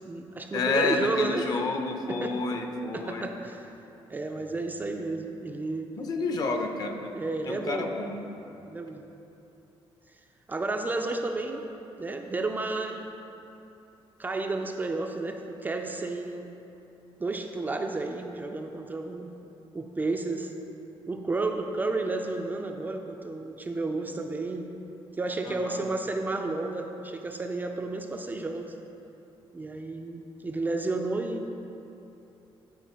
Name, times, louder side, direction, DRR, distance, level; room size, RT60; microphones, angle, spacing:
voice 1, 0.0-1.5 2.1-2.3 2.9-3.6 4.1-5.9 7.1-7.9 8.6-9.0 10.5-11.7 12.0-13.0 14.2-16.5 17.2-19.3 19.7-20.5 21.1-24.7 25.2-28.7 29.5-31.5, right 3 dB, 20° right, 3 dB, 0.4 m, -31 dB
voice 2, 0.5-3.2 6.0-7.2 7.4-8.2 25.5-25.8, left 3 dB, 40° left, 4 dB, 0.7 m, -30 dB
11.0 x 4.3 x 5.6 m, 2.9 s
cardioid pair, 165°, 10 cm